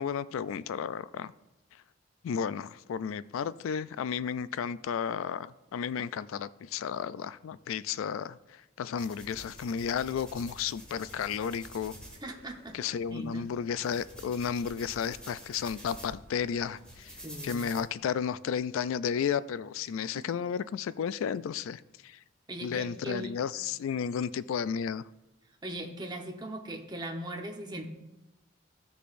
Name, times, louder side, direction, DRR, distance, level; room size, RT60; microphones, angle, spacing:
voice 1, 0.0-1.3 2.2-11.9 12.7-17.2 17.4-22.2 22.6-25.0, left 7 dB, 75° left, 0.3 m, -33 dB
sound 1, 9.0-17.8, equal, 5° left, 2.0 m, -49 dB
voice 2, 12.2-13.5 17.2-17.6 20.1-20.3 22.5-23.3 25.6-27.9, right 1 dB, 20° right, 1.0 m, -39 dB
15.0 x 6.7 x 2.6 m
head